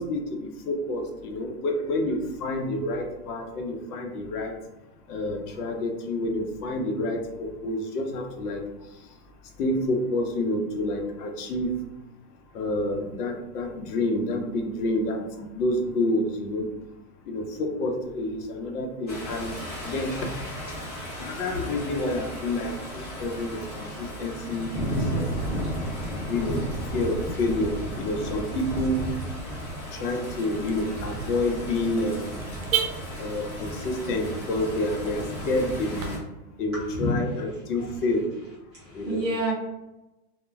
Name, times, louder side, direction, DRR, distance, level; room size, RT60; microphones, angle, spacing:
voice 1, 0.0-4.5 5.1-8.6 9.6-11.7 12.5-16.7 17.3-19.5 19.8-20.3 21.2-25.5 26.3-26.6 26.9-29.1 29.9-32.4 33.2-36.2 36.6-38.3 38.9-39.2, left 1 dB, 75° left, 3 dB, 0.7 m, -28 dB
sound 1, 19.1-36.2, equal, 25° left, 0.5 m, -34 dB
Car / Alarm, 26.9-36.1, right 8 dB, 65° right, 0.6 m, -38 dB
voice 2, 36.7-37.1 38.7-39.5, right 1 dB, 20° right, -10 dB, 0.6 m, -29 dB
2.2 x 2.0 x 3.3 m, 0.98 s
supercardioid pair, 175°, 47 cm